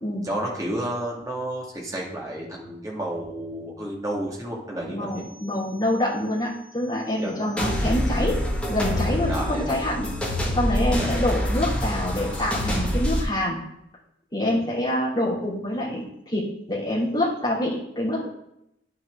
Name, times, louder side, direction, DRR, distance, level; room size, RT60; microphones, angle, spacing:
voice 1, 0.2-5.2 7.2-7.3 9.3-9.8 11.0-11.1 14.5-14.7, right 1 dB, 20° right, -3 dB, 2.0 m, -31 dB
voice 2, 4.8-8.4 8.7-10.1 10.5-13.6 14.3-18.3, left 1 dB, 25° left, -8 dB, 2.9 m, -26 dB
sound 1, 7.6-13.2, equal, 5° left, 1.7 m, -26 dB
9.6 x 6.4 x 3.7 m, 0.79 s
head